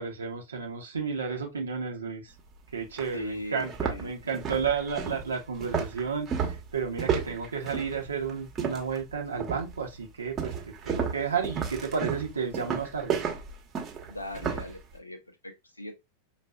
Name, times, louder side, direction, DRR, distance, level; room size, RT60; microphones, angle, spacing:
voice 1, 0.0-2.3 2.7-13.1, right 6 dB, 70° right, 0.8 m, -32 dB
sound 1, 2.4-2.5 3.0-3.1 3.5-9.0 9.4-9.8 10.4-14.7, right 6 dB, 25° right, 1.0 m, -32 dB
voice 2, 3.1-4.3 14.1-15.9, left 1 dB, 80° left, 0.6 m, -40 dB
5.5 x 2.5 x 2.3 m
figure-of-eight pair, 90°, 0 cm